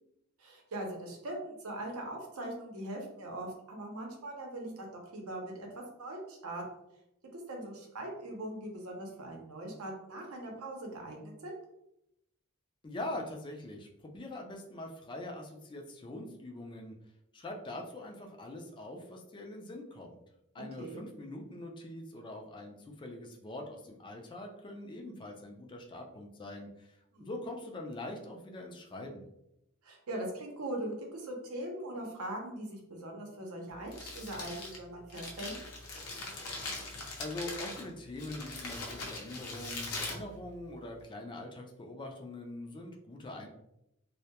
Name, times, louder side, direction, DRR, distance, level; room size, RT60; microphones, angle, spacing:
voice 1, 0.4-5.7 6.0-6.6 7.3-11.6 20.8-21.0 27.1-27.3 29.8-35.6, right 1 dB, 75° right, 1 dB, 0.6 m, -41 dB
voice 2, 12.8-16.9 17.3-20.2 20.5-26.9 27.2-29.2 37.2-43.5, left 1 dB, 20° left, 2 dB, 0.3 m, -43 dB
Crumpling crinkling, 33.7-41.0, left 2 dB, 80° left, 0.6 m, -42 dB
2.2 x 2.1 x 2.8 m, 0.82 s
head